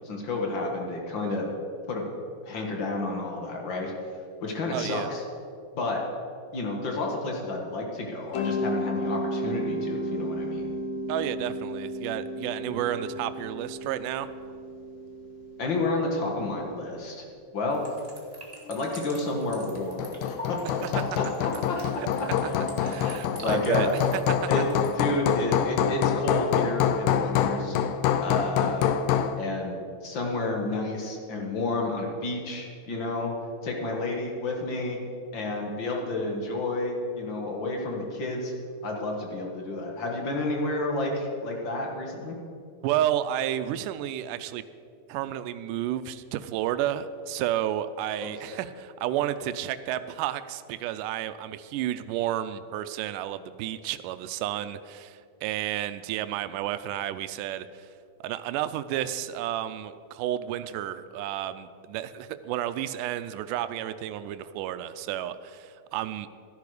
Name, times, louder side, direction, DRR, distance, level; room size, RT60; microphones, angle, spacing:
voice 1, 0.0-1.5 1.9-2.1 2.5-3.9 4.4-5.2 5.7-6.0 6.5-10.7 15.6-17.3 17.5-17.9 18.7-20.6 21.2-22.6 23.4-23.9 24.5-24.7 25.0-27.8 28.2-28.9 29.4-33.3 33.6-35.0 35.3-38.5 38.8-42.4 48.2-48.6, left 2 dB, 45° left, 0 dB, 1.8 m, -30 dB
voice 2, 4.7-5.1 11.1-14.3 21.0-21.1 22.6-24.5 42.8-44.6 45.1-57.9 58.2-66.3, right 12 dB, 85° right, 12 dB, 2.1 m, -31 dB
Mallet percussion, 8.3-17.1, equal, 70° left, 2.1 m, -34 dB
sound 1, 17.7-24.9, right 1 dB, 30° right, 0.7 m, -45 dB
Hammer, 19.8-29.4, left 8 dB, 85° left, 2.2 m, -26 dB
13.5 x 10.5 x 4.9 m, 2.4 s
omnidirectional pair, 3.7 m